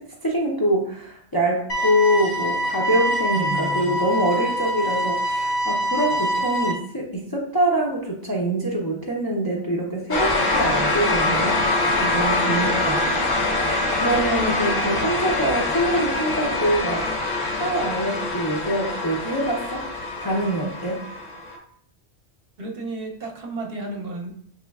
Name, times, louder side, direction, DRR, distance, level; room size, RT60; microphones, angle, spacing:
voice 1, 0.0-13.4 14.0-17.3 17.6-19.8 20.2-21.1, right 1 dB, 30° left, -3 dB, 0.4 m, -25 dB
sound 1, 1.7-6.7, equal, 80° left, 1.2 m, -24 dB
voice 2, 3.3-4.0 22.6-24.3, right 2 dB, 60° right, 1 dB, 0.8 m, -32 dB
sound 2, 10.1-21.6, left 2 dB, 50° left, 0.8 m, -24 dB
5.6 x 3.0 x 2.3 m, 0.64 s
omnidirectional pair, 1.2 m